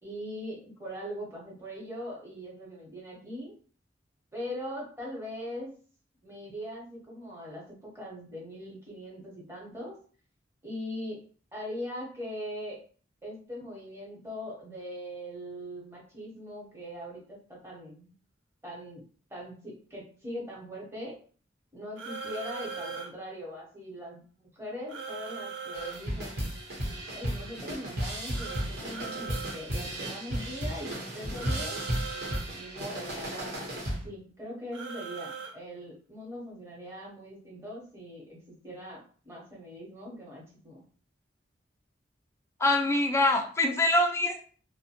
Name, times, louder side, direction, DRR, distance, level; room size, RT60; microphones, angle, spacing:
voice 1, 0.0-3.5 4.3-5.7 6.2-9.9 10.6-11.2 11.5-12.8 13.2-18.1 18.6-19.0 19.3-21.1 21.7-26.5 27.1-31.8 32.5-40.8, equal, 15° right, -4 dB, 0.9 m, -41 dB
sound 1, 22.0-23.1 24.9-26.0 28.3-29.6 31.3-32.5 34.7-35.5, right 5 dB, 75° right, 0.4 m, -39 dB
sound 2, 25.7-34.1, right 1 dB, 55° right, 0.9 m, -34 dB
voice 2, 42.6-44.4, left 2 dB, 15° left, 4 dB, 0.3 m, -24 dB
2.7 x 2.1 x 2.8 m, 0.42 s
head